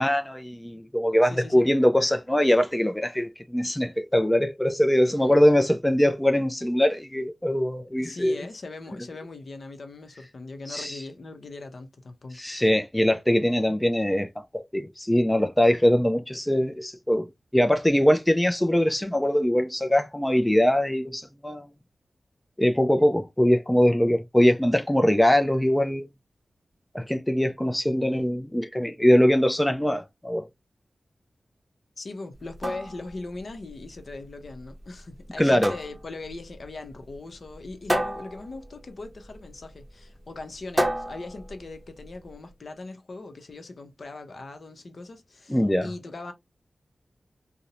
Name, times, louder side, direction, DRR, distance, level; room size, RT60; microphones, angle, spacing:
voice 1, 0.0-8.4 10.7-11.0 12.3-17.3 17.5-21.7 22.6-26.1 26.9-30.5 35.4-35.7 45.5-45.9, equal, 10° left, 0.3 m, -22 dB
voice 2, 1.3-1.7 5.1-5.3 7.9-12.7 32.0-46.3, left 3 dB, 65° left, 0.6 m, -40 dB
sound 1, 32.3-42.3, equal, 10° right, 0.7 m, -33 dB
2.5 x 2.0 x 2.8 m
wide cardioid pair, 85°, 0 cm